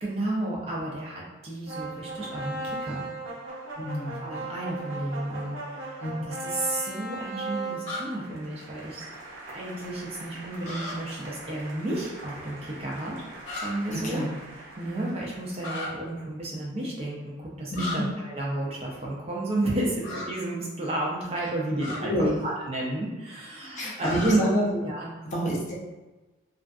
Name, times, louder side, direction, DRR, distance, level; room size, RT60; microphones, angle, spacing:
voice 1, 0.0-3.1 4.2-9.1 9.5-13.2 13.6-14.2 14.8-24.4 24.8-25.1, right 1 dB, 30° right, -4 dB, 0.5 m, -32 dB
sound 1, 1.7-15.8, right 2 dB, 75° right, 0.7 m, -39 dB
voice 2, 3.8-4.3 6.0-6.1 13.9-14.3 17.7-18.0 22.0-22.3 23.8-24.8 25.3-25.8, equal, 35° left, -4 dB, 0.5 m, -27 dB
sound 2, 7.9-8.0 10.6-10.9 13.4-13.7 15.6-15.9 17.7-18.0 20.0-20.3 21.8-22.0 24.0-24.3, left 2 dB, 65° left, 0.7 m, -34 dB
2.4 x 2.4 x 2.3 m, 1.1 s
head